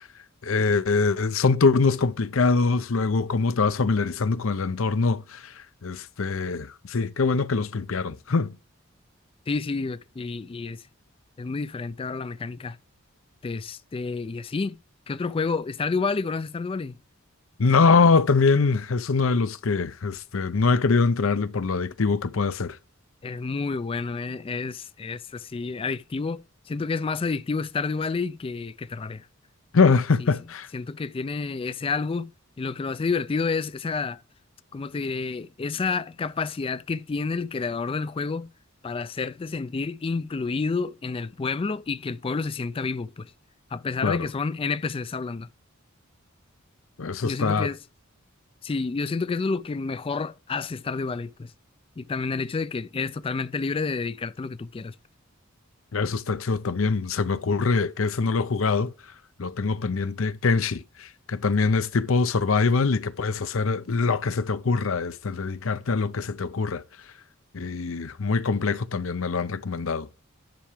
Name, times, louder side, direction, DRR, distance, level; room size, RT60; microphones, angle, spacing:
voice 1, 0.4-5.4 5.8-8.5 17.6-22.8 29.7-30.7 44.0-44.2 47.0-47.7 55.9-58.9 59.4-66.8 67.5-70.1, left 4 dB, 70° left, 0.7 m, -23 dB
voice 2, 9.5-10.8 11.4-12.8 13.4-14.8 15.1-17.0 23.2-29.3 30.2-30.3 30.7-32.3 32.6-34.2 34.7-38.5 38.8-43.3 43.7-45.5 47.2-47.8 48.6-51.5 52.0-54.9, left 4 dB, 25° left, 0.4 m, -29 dB
10.5 x 5.7 x 4.9 m
head